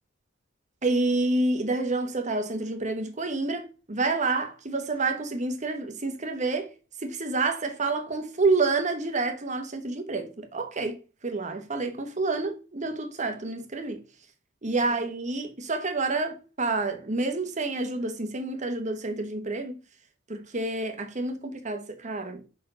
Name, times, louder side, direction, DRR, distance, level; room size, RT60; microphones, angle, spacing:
voice 1, 0.8-6.7 7.0-14.0 14.6-19.7 20.3-22.5, right 3 dB, 40° right, 1.2 m, -28 dB
5.6 x 4.5 x 5.5 m
head